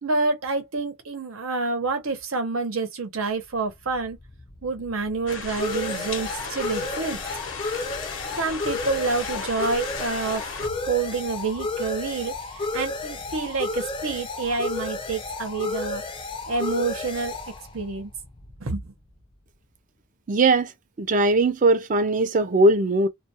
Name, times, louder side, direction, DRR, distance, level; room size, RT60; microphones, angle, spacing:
voice 1, 0.0-4.2 4.6-7.2 7.7-7.8 8.3-16.0 16.5-17.3 17.7-18.1 18.6-18.9, right 4 dB, 90° right, 0.9 m, -28 dB
sound 1, 3.7-19.1, left 3 dB, 25° left, 0.4 m, -33 dB
sound 2, 5.3-10.7, left 5 dB, 65° left, 0.7 m, -35 dB
voice 2, 20.3-20.7 21.0-23.1, right 2 dB, 40° right, 0.4 m, -19 dB
2.2 x 2.2 x 2.7 m
head